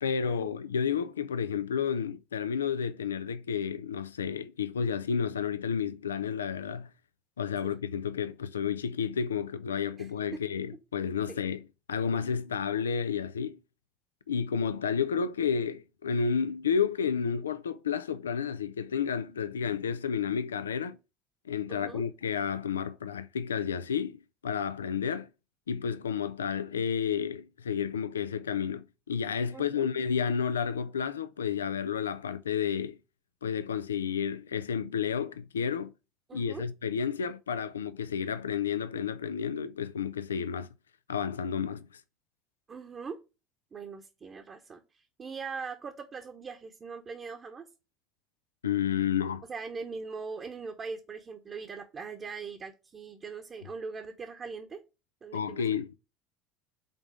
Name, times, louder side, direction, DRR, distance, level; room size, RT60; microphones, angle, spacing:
voice 1, 0.0-6.9 7.4-13.6 14.3-21.0 21.5-25.3 25.7-33.0 33.4-35.9 36.3-40.7 41.1-41.9 48.6-49.4 55.3-55.9, left 7 dB, 90° left, 0.3 m, -31 dB
voice 2, 21.7-22.0 29.5-29.9 36.3-36.6 42.7-43.2 43.7-47.7 49.5-54.8 55.2-55.6, right 5 dB, 35° right, 0.9 m, -41 dB
5.2 x 3.8 x 4.8 m
hypercardioid pair, 70°, 0 cm